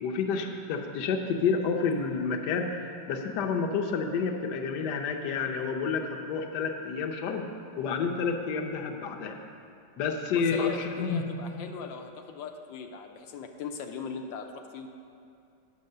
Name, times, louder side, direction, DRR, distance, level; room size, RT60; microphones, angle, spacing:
voice 1, 0.0-7.5 7.8-9.3 10.0-11.3, left 5 dB, 70° left, 3 dB, 1.3 m, -29 dB
voice 2, 10.3-14.9, left 6 dB, 85° left, 3 dB, 1.4 m, -39 dB
9.4 x 6.3 x 6.5 m, 2.5 s
omnidirectional pair, 2.0 m